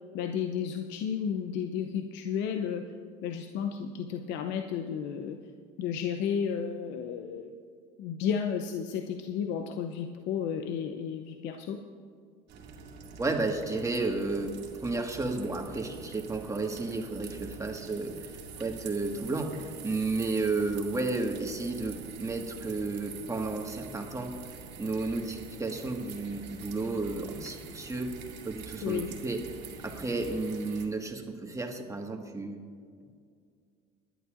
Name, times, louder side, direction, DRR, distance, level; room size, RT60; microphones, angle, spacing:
voice 1, 0.1-2.8 3.2-5.4 5.8-7.5 8.0-11.8 28.8-29.1, left 7 dB, 65° left, 6 dB, 0.7 m, -32 dB
sound 1, 12.5-30.9, right 5 dB, 55° right, 2.1 m, -46 dB
voice 2, 13.2-24.3 24.8-28.1 28.5-29.4 29.8-32.6, right 3 dB, 15° right, 3 dB, 1.7 m, -32 dB
20.5 x 11.0 x 2.5 m, 2.1 s
hypercardioid pair, 80°, 20 cm